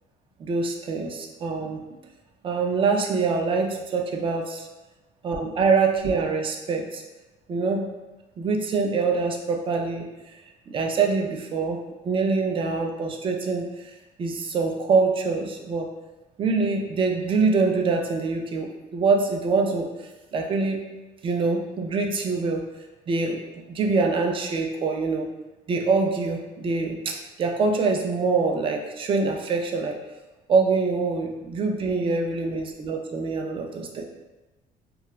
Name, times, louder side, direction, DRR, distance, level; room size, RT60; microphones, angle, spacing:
voice 1, 0.4-1.8 2.4-4.7 5.2-7.0 7.5-7.9 8.4-10.1 10.7-15.9 16.4-19.9 20.3-20.8 21.2-22.6 23.1-23.4 23.7-25.3 25.7-30.0 30.5-34.0, right 4 dB, 30° right, 2 dB, 0.4 m, -24 dB
2.3 x 2.3 x 3.0 m, 1.0 s
cardioid pair, 110°, 17 cm